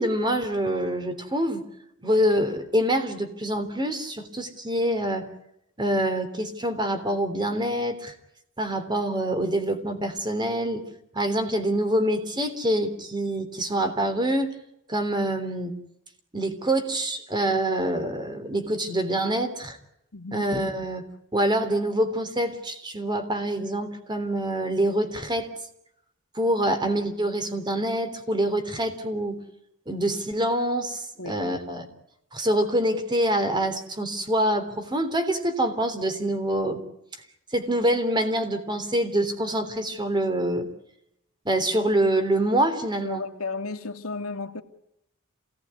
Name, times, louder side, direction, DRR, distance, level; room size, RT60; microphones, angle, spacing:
voice 1, 0.0-1.6 2.0-5.3 5.8-8.1 8.6-10.9 11.1-14.5 14.9-15.8 16.3-19.8 20.3-21.0 21.3-25.5 26.4-29.4 29.9-31.9 32.3-36.8 37.5-40.7 41.5-43.2, right 1 dB, 20° right, 3.4 m, -25 dB
voice 2, 20.1-20.4 31.2-31.4 43.0-44.6, left 3 dB, 70° left, 2.3 m, -33 dB
28.0 x 18.0 x 9.7 m
head